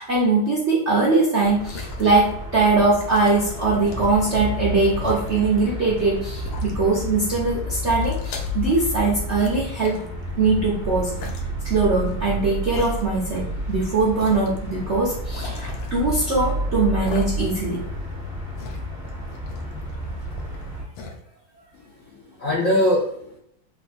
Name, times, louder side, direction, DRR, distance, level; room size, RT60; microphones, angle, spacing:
voice 1, 0.0-10.0 10.4-11.2 11.6-17.8, right 3 dB, 80° right, -4 dB, 0.6 m, -21 dB
sound 1, 1.4-2.5 2.9-4.3 4.9-5.3 6.0-6.1 6.4-7.2 7.5-9.1 9.4-10.5 11.2-11.4 12.1-12.2 12.7-13.4 13.7-13.8 14.2-14.6 15.3-16.5 17.0-17.7 18.0-20.6 20.9-21.2, left 4 dB, 85° left, 1.6 m, -39 dB
sound 2, 1.4-20.8, equal, 30° right, 1.4 m, -30 dB
voice 2, 21.7-23.4, left 1 dB, 65° left, -6 dB, 0.7 m, -23 dB
4.9 x 2.5 x 2.5 m, 0.75 s
omnidirectional pair, 2.4 m